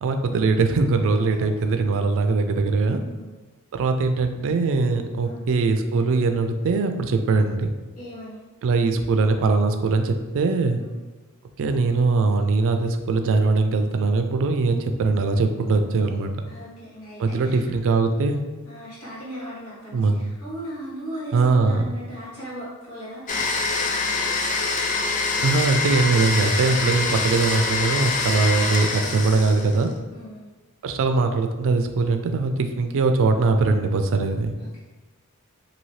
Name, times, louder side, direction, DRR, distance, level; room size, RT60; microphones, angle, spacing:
voice 1, 0.0-3.0 3.7-7.7 8.6-10.8 11.6-16.4 17.2-18.4 19.9-20.2 21.3-21.8 25.4-29.9 30.8-34.5, right 3 dB, 60° right, 7 dB, 0.3 m, -21 dB
voice 2, 1.1-1.5 3.0-3.3 5.2-5.4 8.0-8.4 10.8-10.9 16.5-17.7 18.6-23.4 30.1-30.5 34.6-34.8, equal, 80° left, -9 dB, 1.5 m, -38 dB
Domestic sounds home sounds, 23.3-29.9, left 3 dB, 35° left, 0.4 m, -25 dB
2.8 x 2.7 x 3.0 m, 1.2 s
head